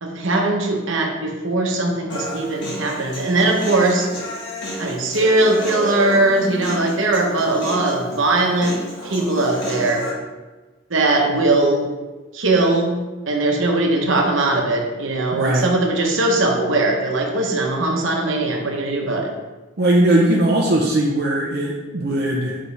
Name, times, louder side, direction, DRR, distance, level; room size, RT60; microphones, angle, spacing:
voice 1, 0.0-4.1 4.8-8.8 9.0-10.0 10.9-11.9 12.3-13.0 13.3-19.3, right 2 dB, 75° right, 1 dB, 1.0 m, -20 dB
Human voice, 2.1-10.1, equal, 60° left, 1.6 m, -31 dB
voice 2, 15.3-15.7 19.8-22.6, right 1 dB, 55° right, -3 dB, 0.7 m, -19 dB
5.9 x 5.1 x 3.3 m, 1.2 s
head